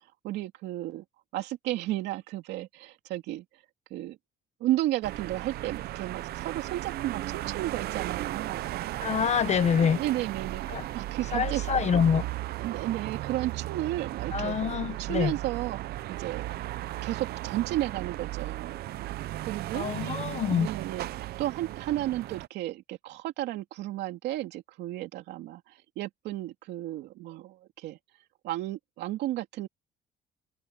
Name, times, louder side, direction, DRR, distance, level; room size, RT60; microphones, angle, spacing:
voice 1, 0.2-1.0 1.3-3.4 3.9-4.2 4.6-8.6 9.8-10.6 10.9-11.6 12.6-14.5 15.0-16.5 17.0-18.8 19.5-19.9 20.5-21.1 21.4-28.0 28.4-29.7, right 15 dB, 85° right, 2.8 m, -33 dB
sound 1, 5.0-22.5, right 15 dB, 70° right, 0.7 m, -35 dB
voice 2, 9.0-10.0 10.7-10.8 11.3-12.3 14.3-15.3 19.7-20.7, left 7 dB, 40° left, 1.0 m, -26 dB
cardioid pair, 110°, 17 cm